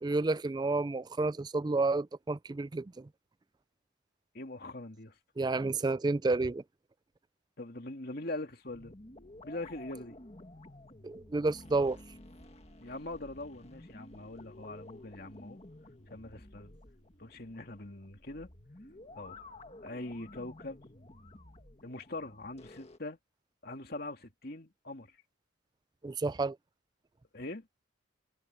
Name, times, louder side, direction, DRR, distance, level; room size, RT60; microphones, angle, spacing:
voice 1, 0.0-3.1 5.4-6.6 11.0-12.0 26.0-26.6, right 3 dB, 20° right, 0.3 m, -30 dB
voice 2, 4.3-5.1 7.6-8.9 9.4-10.2 12.8-15.6 16.1-16.8 17.2-18.5 19.2-19.4 19.8-20.8 21.8-23.2 23.6-25.1 27.3-27.7, left 2 dB, 50° left, 2.6 m, -42 dB
sound 1, 8.7-23.0, left 2 dB, 30° left, 1.8 m, -52 dB
head